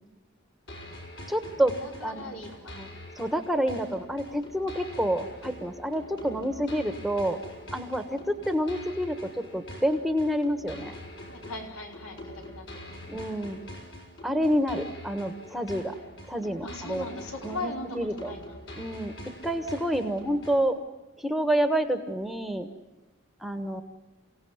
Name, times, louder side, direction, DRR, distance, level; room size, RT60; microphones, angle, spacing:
sound 1, 0.7-20.7, left 1 dB, 55° left, 6.1 m, -44 dB
voice 1, 1.3-1.7 2.0-2.3 2.8-2.9 3.2-7.4 7.7-8.2 8.5-10.9 13.1-13.6 14.2-15.9 16.3-17.0 17.4-18.3 18.8-19.1 19.4-20.7 21.2-22.7 23.4-23.8, equal, ahead, 8 dB, 1.3 m, -28 dB
voice 2, 1.8-2.9 11.3-13.3 16.6-18.6, left 2 dB, 75° left, 2 dB, 4.9 m, -39 dB
29.0 x 17.5 x 9.6 m, 1.1 s
head